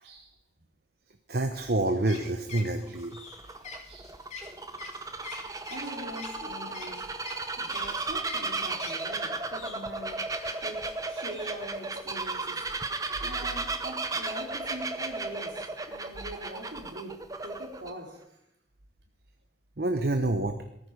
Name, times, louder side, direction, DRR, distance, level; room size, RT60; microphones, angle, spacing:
voice 1, 0.0-0.3 3.9-4.2 5.7-7.2 7.6-10.3 10.6-12.6 13.2-15.6 15.9-18.4, right 1 dB, 70° right, 0 dB, 4.6 m, -43 dB
voice 2, 1.3-3.2 19.8-20.5, right 2 dB, 55° right, 6 dB, 1.0 m, -27 dB
sound 1, 1.5-9.2 9.5-10.9 11.3-11.6, left 4 dB, 35° left, 2.7 m, -45 dB
Bird vocalization bird call bird song, 2.9-17.9, right 3 dB, 20° right, 0.9 m, -35 dB
18.0 x 14.5 x 5.3 m, 0.80 s
head